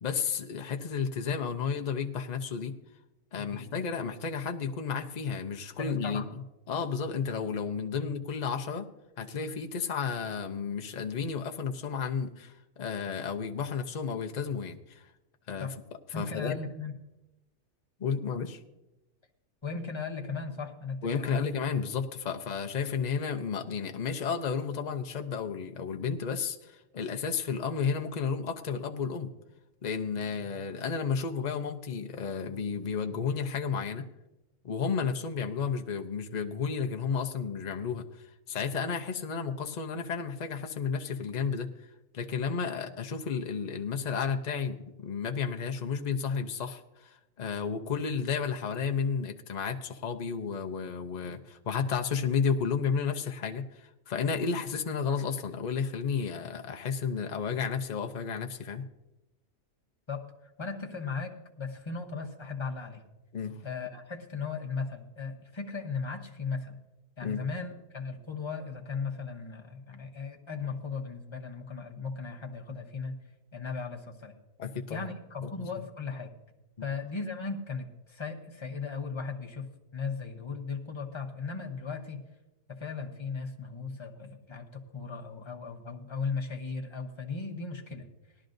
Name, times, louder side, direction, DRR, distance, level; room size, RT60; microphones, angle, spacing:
voice 1, 0.0-2.7 3.3-6.4 6.7-8.9 9.2-15.0 15.5-15.7 16.1-16.6 18.0-18.6 21.0-29.3 29.8-34.0 34.6-41.7 42.1-58.8 63.3-63.6 67.2-67.4 74.6-75.1 75.4-75.7 76.8-76.9, left 6 dB, 65° left, 4 dB, 0.4 m, -32 dB
voice 2, 3.4-3.7 5.8-6.3 8.0-8.1 15.6-15.7 16.1-16.9 19.6-21.5 42.7-42.8 60.1-63.0 63.6-66.8 67.2-73.2 73.5-74.3 74.9-76.3 76.8-82.2 82.7-88.1, left 5 dB, 25° left, 2 dB, 0.7 m, -37 dB
18.5 x 12.5 x 2.6 m, 0.99 s
omnidirectional pair, 1.7 m